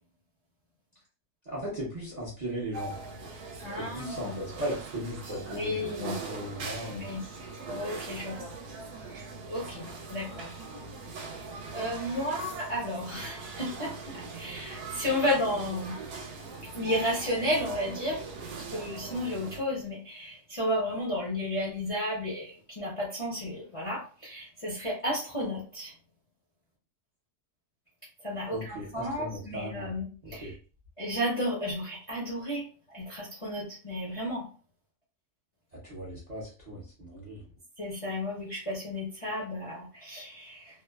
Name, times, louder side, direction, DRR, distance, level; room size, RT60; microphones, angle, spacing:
voice 1, 1.5-2.9 3.8-7.1 28.5-29.9 30.2-30.5 35.8-37.4, right 1 dB, 40° right, -6 dB, 0.6 m, -37 dB
sound 1, 2.7-19.6, right 4 dB, 80° right, 1.1 m, -41 dB
voice 2, 3.6-4.4 5.5-6.2 6.9-7.2 7.7-8.6 9.1-10.6 11.3-11.5 11.7-16.0 16.7-18.2 18.6-25.9 28.2-30.5 31.0-32.7 32.9-34.5 37.8-40.8, left 1 dB, 35° left, -6 dB, 0.5 m, -33 dB
2.8 x 2.0 x 2.2 m, 0.38 s
omnidirectional pair, 1.6 m